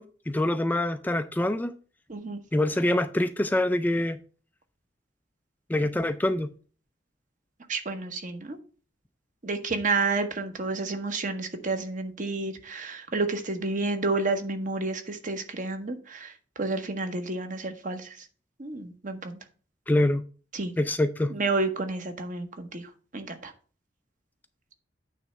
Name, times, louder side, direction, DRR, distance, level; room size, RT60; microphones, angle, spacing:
voice 1, 0.0-1.7 2.5-4.2 5.7-6.5 19.9-20.2 20.8-21.3, left 1 dB, 10° left, 0.3 m, -25 dB
voice 2, 2.1-2.4 7.7-8.6 9.4-16.3 16.6-18.2 18.6-19.4 20.5-20.7 21.3-23.5, right 3 dB, 45° right, 1.1 m, -30 dB
9.0 x 3.3 x 6.3 m
head